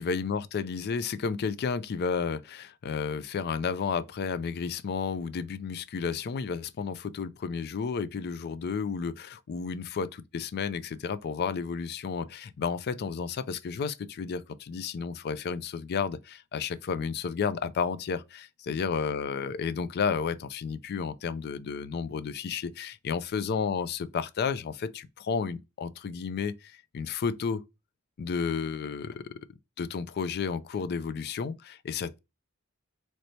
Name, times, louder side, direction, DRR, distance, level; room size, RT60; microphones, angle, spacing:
voice 1, 0.0-10.1 10.3-27.6 28.2-29.4 29.8-32.2, left 5 dB, 50° left, 0.4 m, -32 dB
3.2 x 2.7 x 3.0 m
head